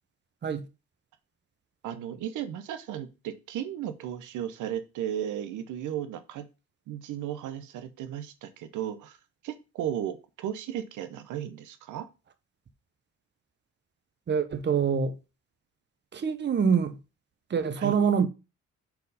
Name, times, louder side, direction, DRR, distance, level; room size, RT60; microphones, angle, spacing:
voice 1, 1.8-6.5 6.9-9.2 9.4-12.1 17.8-18.0, right 10 dB, 85° right, 0.8 m, -35 dB
voice 2, 14.3-15.2 16.1-17.0 17.5-18.3, right 6 dB, 35° right, 0.9 m, -25 dB
4.5 x 4.0 x 5.4 m
cardioid pair, 90°, 30 cm